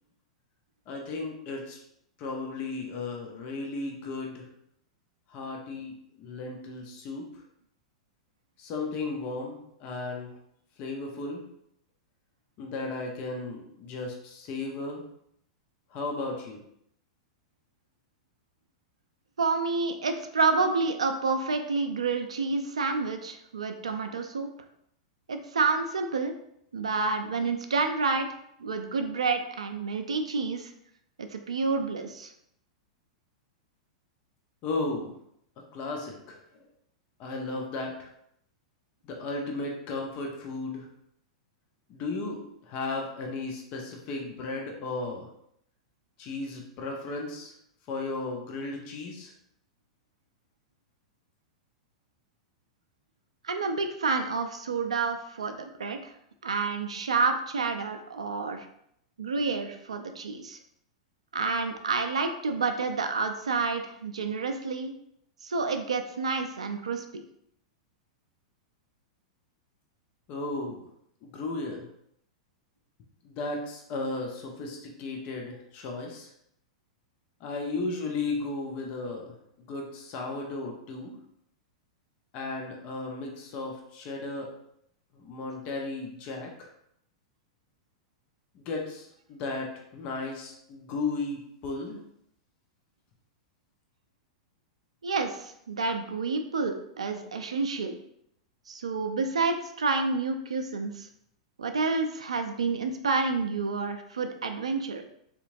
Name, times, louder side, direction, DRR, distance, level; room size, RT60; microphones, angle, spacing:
voice 1, 0.9-1.8 2.2-4.5 5.3-7.4 8.6-10.3 10.8-11.4 12.6-15.0 15.9-16.6 34.6-35.1 35.7-36.6 37.2-38.1 39.0-40.9 41.9-45.3 46.2-47.5 47.9-49.3 70.3-70.9 71.2-71.9 73.2-76.3 77.4-81.1 82.3-84.5 85.1-86.7 88.5-92.0, left 3 dB, 45° left, 0 dB, 0.7 m, -35 dB
voice 2, 19.4-24.5 25.3-26.3 26.7-28.3 28.6-30.7 31.2-32.3 53.4-56.0 56.4-58.7 59.2-60.6 61.3-64.9 65.4-67.2 95.0-98.0 98.7-101.1 101.6-105.0, right 4 dB, 80° right, 6 dB, 0.3 m, -29 dB
3.6 x 2.9 x 2.6 m, 0.73 s
hypercardioid pair, 100°, 3 cm